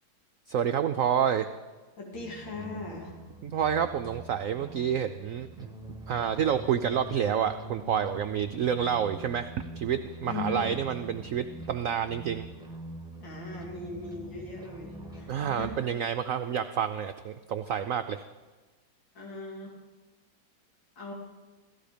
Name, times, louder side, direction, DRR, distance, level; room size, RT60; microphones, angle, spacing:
voice 1, 0.5-1.5 3.4-12.5 15.3-18.2, right 8 dB, 70° right, 9 dB, 0.8 m, -29 dB
voice 2, 2.0-3.1 10.3-10.8 13.2-15.7 19.1-19.8 21.0-21.1, left 3 dB, 90° left, -2 dB, 3.3 m, -39 dB
sound 1, 2.1-15.8, right 1 dB, 5° right, 1.0 m, -44 dB
16.5 x 15.0 x 5.1 m, 1.3 s
omnidirectional pair, 2.0 m